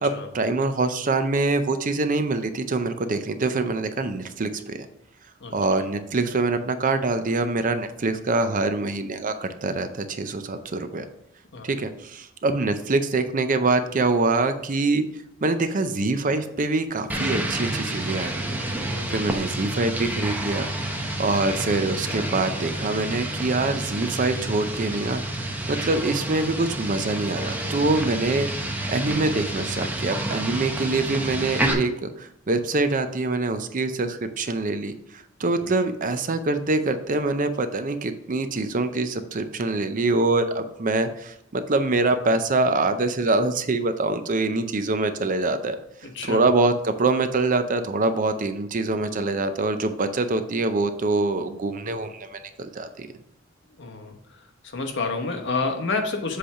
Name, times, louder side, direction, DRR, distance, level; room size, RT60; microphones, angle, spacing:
voice 1, 0.0-4.8 5.5-11.1 11.6-15.0 15.4-18.6 19.1-20.7 21.2-28.5 28.9-45.8 46.2-53.1, right 3 dB, 40° right, 9 dB, 0.5 m, -24 dB
voice 2, 5.4-5.9 11.5-11.7 18.9-19.1 46.0-46.4 53.8-54.1 54.6-56.4, left 3 dB, 60° left, 4 dB, 1.0 m, -29 dB
sound 1, 17.1-31.7, right 1 dB, 10° right, 0.7 m, -29 dB
7.8 x 3.3 x 5.7 m, 0.79 s
head